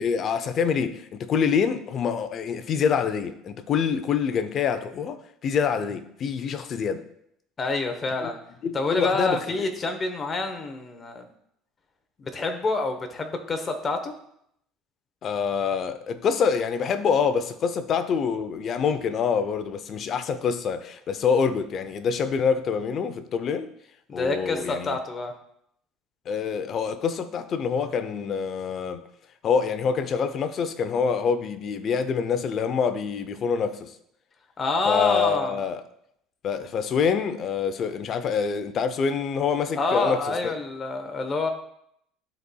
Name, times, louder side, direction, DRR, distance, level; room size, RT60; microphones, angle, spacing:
voice 1, 0.0-7.1 8.2-8.3 8.6-9.7 15.2-23.7 24.1-25.0 26.3-29.0 29.4-33.9 34.9-35.8 36.4-40.5, left 6 dB, 40° left, 0.5 m, -26 dB
voice 2, 7.6-8.4 8.7-11.3 12.2-14.1 24.1-25.3 34.6-35.6 39.8-41.5, left 3 dB, 25° left, 0.9 m, -27 dB
12.0 x 4.1 x 2.3 m
cardioid pair, 125°, 0 cm